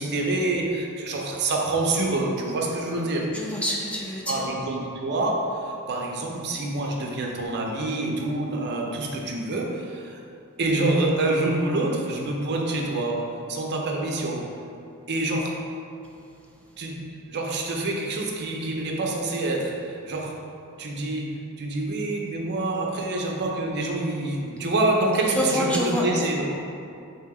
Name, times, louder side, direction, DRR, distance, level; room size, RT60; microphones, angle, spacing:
voice 1, 0.0-3.3 4.3-10.2 10.6-14.5 15.1-15.6 16.8-17.0 17.3-20.4 20.8-26.6, right 2 dB, 50° right, 0 dB, 0.5 m, -26 dB
voice 2, 3.3-4.4 25.3-26.1, left 1 dB, 5° left, -3 dB, 0.4 m, -26 dB
3.4 x 2.8 x 4.7 m, 2.5 s
head